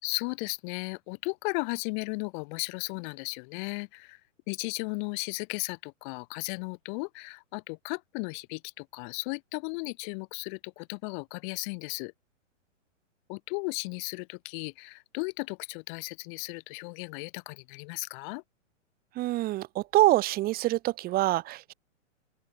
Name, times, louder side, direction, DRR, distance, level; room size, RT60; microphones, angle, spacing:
voice 1, 0.0-4.2 4.5-12.1 13.3-18.4, left 33 dB, 40° left, 6.2 m, -35 dB
voice 2, 19.1-21.7, right 16 dB, 25° right, 1.3 m, -25 dB
open air
hypercardioid pair, 135°, 37 cm